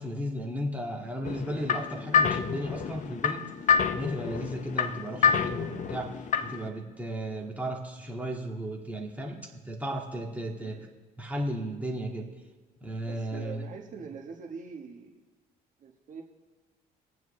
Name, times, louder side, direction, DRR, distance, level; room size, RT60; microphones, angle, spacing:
voice 1, 0.0-3.5 3.9-6.1 6.4-10.9 11.2-12.3 12.8-13.7, equal, 10° right, -1 dB, 1.9 m, -34 dB
sound 1, 1.3-6.7, left 7 dB, 45° left, 0.7 m, -28 dB
voice 2, 10.5-10.9 13.0-15.2 15.8-16.2, right 5 dB, 50° right, 2 dB, 1.3 m, -43 dB
24.0 x 9.2 x 3.2 m, 1.3 s
cardioid pair, 110°, 17 cm